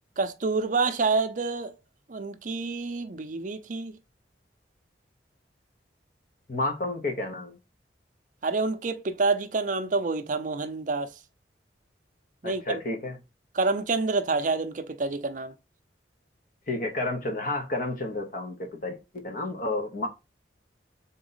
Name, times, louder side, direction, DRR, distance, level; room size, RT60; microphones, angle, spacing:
voice 1, 0.2-1.7 2.1-3.9 8.4-11.1 12.4-12.8 13.5-15.5, right 3 dB, 45° right, 0.5 m, -27 dB
voice 2, 6.5-7.6 12.4-13.2 16.7-20.1, left 2 dB, 45° left, 0.9 m, -31 dB
4.0 x 3.0 x 3.9 m
head